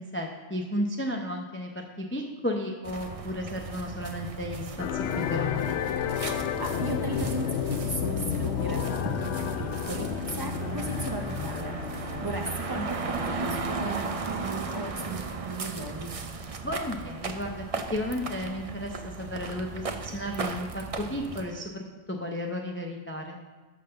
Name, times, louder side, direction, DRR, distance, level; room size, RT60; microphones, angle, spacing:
voice 1, 0.0-5.8 12.8-12.9 16.6-17.7 17.9-23.4, left 1 dB, 15° left, 1 dB, 0.6 m, -33 dB
sound 1, 2.8-21.4, right 4 dB, 40° right, 0.6 m, -36 dB
sound 2, 4.8-14.5, left 9 dB, 70° left, 0.8 m, -32 dB
voice 2, 6.6-16.1, right 2 dB, 20° right, 2 dB, 0.9 m, -36 dB
12.0 x 4.1 x 6.8 m, 1.3 s
omnidirectional pair, 1.3 m